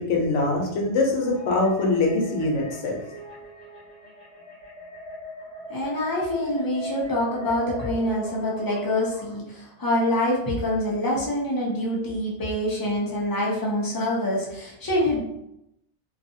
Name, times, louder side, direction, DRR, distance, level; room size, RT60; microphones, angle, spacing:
voice 1, 0.0-3.0, left 2 dB, 90° left, 0 dB, 1.0 m, -23 dB
sound 1, 1.2-9.4, left 1 dB, 70° right, 1.2 m, -40 dB
voice 2, 5.7-15.2, left 1 dB, 25° left, -4 dB, 0.5 m, -25 dB
2.6 x 2.4 x 2.6 m, 0.81 s
omnidirectional pair, 1.2 m